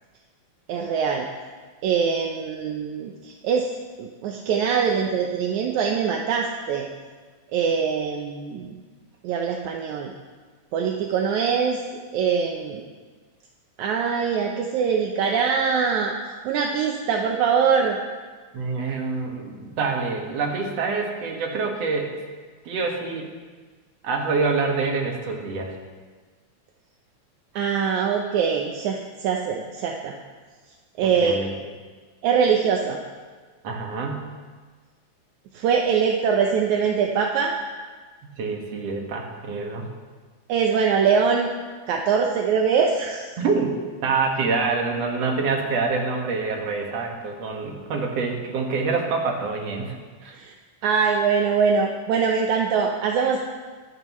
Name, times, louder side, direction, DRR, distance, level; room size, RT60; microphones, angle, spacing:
voice 1, 0.7-1.3 1.8-3.7 4.0-6.9 7.5-8.7 9.2-10.1 10.7-11.8 12.1-12.9 13.8-16.1 16.5-18.0 27.5-30.1 31.0-31.4 32.2-33.0 35.5-37.5 40.5-41.5 41.9-43.3 50.3-50.5 50.8-53.4, right 6 dB, 80° right, 2 dB, 2.2 m, -23 dB
voice 2, 18.5-22.1 22.7-23.3 24.0-25.8 31.0-31.5 33.6-34.3 38.2-39.9 43.4-43.8 44.0-50.4, right 4 dB, 60° right, 1 dB, 2.7 m, -26 dB
24.0 x 11.5 x 3.2 m, 1.5 s
omnidirectional pair, 3.4 m